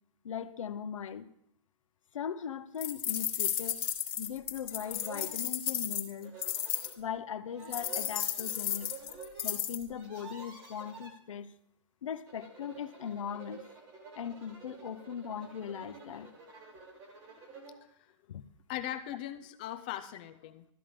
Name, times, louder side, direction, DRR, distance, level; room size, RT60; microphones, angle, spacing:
voice 1, 0.2-1.3 2.1-3.8 4.2-6.4 7.0-8.9 9.4-11.5 12.0-13.6 14.2-16.3 18.3-18.4, left 8 dB, 80° left, 11 dB, 0.7 m, -39 dB
sound 1, 2.8-6.9 7.7-9.8, left 10 dB, 50° left, 1.4 m, -34 dB
sound 2, 3.1-3.2 3.6-3.7 4.4-4.5 4.7-5.3 6.2-7.0 7.5-9.5 9.8-11.1 12.1-17.8, right 4 dB, 20° right, 1.5 m, -50 dB
voice 2, 18.7-20.7, left 12 dB, 15° left, 10 dB, 0.3 m, -39 dB
12.5 x 10.0 x 3.7 m, 0.75 s
hypercardioid pair, 170°, 16 cm